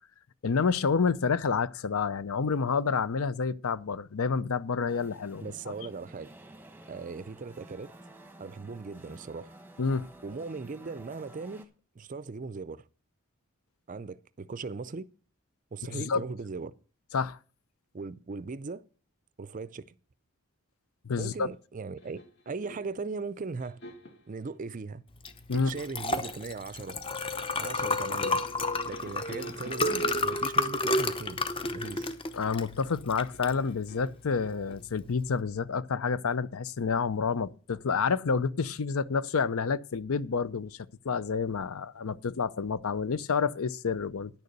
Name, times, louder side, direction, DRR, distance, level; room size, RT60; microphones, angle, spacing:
voice 1, 0.4-5.5 9.8-10.1 15.9-16.2 17.1-17.4 21.0-21.5 25.5-25.7 32.3-44.3, left 5 dB, 75° left, 0.6 m, -29 dB
sound 1, 4.9-11.7, right 1 dB, 10° right, 1.0 m, -51 dB
voice 2, 5.4-6.3 6.9-7.9 8.4-9.6 10.2-11.7 12.0-12.9 13.9-15.1 15.7-16.7 17.9-18.8 19.4-19.9 21.2-23.8 24.3-25.0 25.5-27.0 27.6-28.4 28.9-31.4 31.7-32.1, right 4 dB, 35° right, 0.4 m, -38 dB
sound 2, 22.0-23.0 23.6-24.3 25.3-26.5 28.1-30.8 31.6-32.2 33.3-34.8, right 1 dB, 50° left, 2.1 m, -45 dB
Liquid, 25.2-35.4, left 2 dB, 25° left, 0.8 m, -31 dB
10.0 x 6.7 x 6.6 m
head